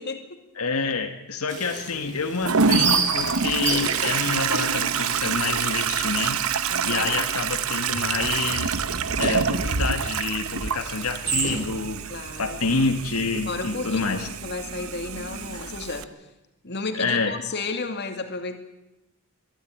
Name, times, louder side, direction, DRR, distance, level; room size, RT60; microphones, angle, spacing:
voice 1, 0.0-0.4 6.7-7.1 12.1-12.6 13.5-16.3 16.6-18.6, left 3 dB, 50° left, 6 dB, 2.4 m, -33 dB
voice 2, 0.6-6.5 6.8-8.8 9.2-12.0 12.4-14.3 16.9-17.3, left 4 dB, 85° left, 5 dB, 1.5 m, -27 dB
sound 1, 1.5-6.4 6.6-6.7 7.2-7.6 7.9-12.0, right 5 dB, 35° right, 2.4 m, -31 dB
Toilet flush, 2.4-16.0, right 6 dB, 70° right, 1.0 m, -27 dB
22.5 x 13.5 x 9.2 m, 0.98 s
head